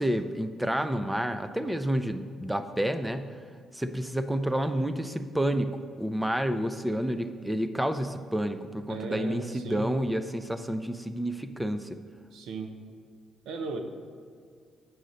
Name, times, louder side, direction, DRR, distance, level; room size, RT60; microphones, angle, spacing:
voice 1, 0.0-3.3 3.7-11.9, right 1 dB, 5° right, 10 dB, 0.5 m, -29 dB
voice 2, 8.9-9.9 12.3-12.7 13.4-13.8, right 4 dB, 80° right, 6 dB, 0.8 m, -36 dB
8.8 x 6.3 x 4.0 m, 2.1 s
cardioid pair, 90°, 0 cm